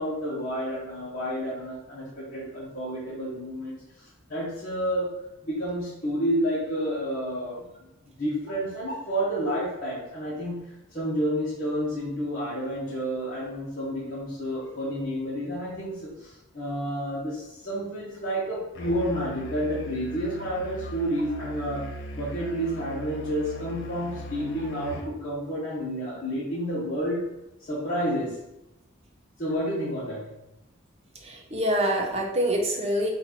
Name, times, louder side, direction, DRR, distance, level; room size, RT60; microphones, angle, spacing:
voice 1, 0.0-7.9 8.2-10.6 10.9-21.8 22.1-27.3 27.6-28.4 29.4-30.3, equal, 40° left, -10 dB, 1.3 m, -30 dB
Musical instrument, 18.8-25.1, equal, 60° left, 0.7 m, -39 dB
voice 2, 31.2-33.1, equal, 30° right, 0 dB, 0.8 m, -25 dB
4.4 x 2.6 x 4.3 m, 0.91 s
head